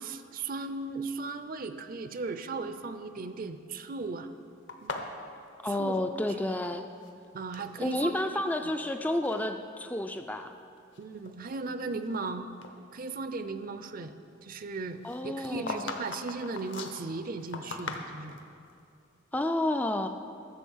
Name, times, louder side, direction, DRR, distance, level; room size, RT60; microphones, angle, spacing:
voice 1, 0.0-4.3 4.8-5.1 5.7-6.0 6.4-6.5 7.3-8.7 11.0-12.5 12.9-14.1 14.4-18.4, right 3 dB, 45° right, 10 dB, 0.5 m, -37 dB
sound 1, 4.7-6.7 6.9-7.7 8.3-8.9 9.2-9.5 10.1-10.2 10.8-12.3 12.6-12.7 15.0-18.5, left 3 dB, 65° left, 1.0 m, -40 dB
voice 2, 5.6-6.8 7.8-10.5 15.0-15.9 19.3-20.1, left 1 dB, 10° left, 6 dB, 0.3 m, -30 dB
13.0 x 6.9 x 7.2 m, 2.4 s
head